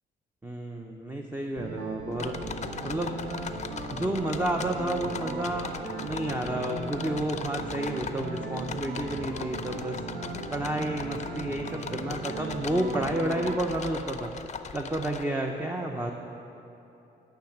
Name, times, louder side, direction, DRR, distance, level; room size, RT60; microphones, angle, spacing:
voice 1, 0.4-2.4 2.8-3.2 3.9-10.0 10.5-14.3 14.7-16.1, right 1 dB, 10° right, 2 dB, 0.7 m, -31 dB
sound 1, 1.6-13.6, right 3 dB, 60° right, 1.4 m, -38 dB
sound 2, 2.1-15.2, left 6 dB, 35° left, 0.6 m, -40 dB
10.5 x 5.8 x 8.0 m, 2.9 s
cardioid pair, 90°, 20 cm